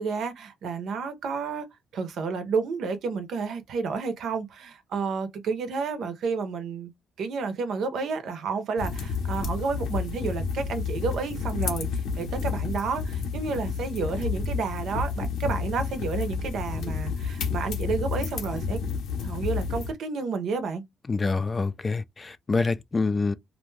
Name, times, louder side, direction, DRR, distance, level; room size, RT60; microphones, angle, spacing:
voice 1, 0.0-1.7 1.9-6.9 7.2-18.8 19.2-20.8, right 4 dB, 70° right, 0.6 m, -31 dB
sound 1, 8.8-19.9, left 5 dB, 85° left, 0.8 m, -30 dB
voice 2, 21.1-23.3, left 4 dB, 30° left, 0.3 m, -26 dB
2.5 x 2.2 x 3.1 m
cardioid pair, 90°, 0 cm